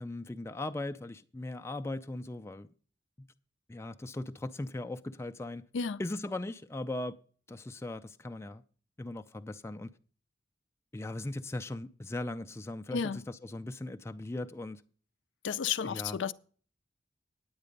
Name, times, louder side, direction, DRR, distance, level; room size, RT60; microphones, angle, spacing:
voice 1, 0.0-2.7 3.2-3.3 3.7-5.6 6.0-7.2 7.5-8.6 9.0-9.9 10.9-14.8 15.8-16.2, left 2 dB, 15° left, 0.4 m, -38 dB
voice 2, 12.9-13.2 15.4-16.3, left 6 dB, 75° left, 0.4 m, -32 dB
9.6 x 9.1 x 5.2 m
head